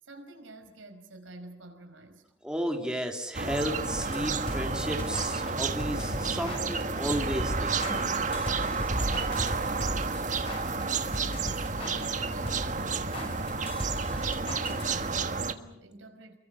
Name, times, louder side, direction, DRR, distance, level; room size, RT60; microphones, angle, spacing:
voice 1, 0.0-2.2 8.9-13.5 14.1-16.4, right 2 dB, 85° right, 5.3 m, -48 dB
voice 2, 2.4-8.1, equal, 5° right, 2.7 m, -33 dB
sound 1, 3.3-15.5, right 4 dB, 40° right, 1.5 m, -30 dB
sound 2, 4.0-15.3, left 1 dB, 30° left, 6.3 m, -40 dB
29.5 x 22.5 x 7.0 m
head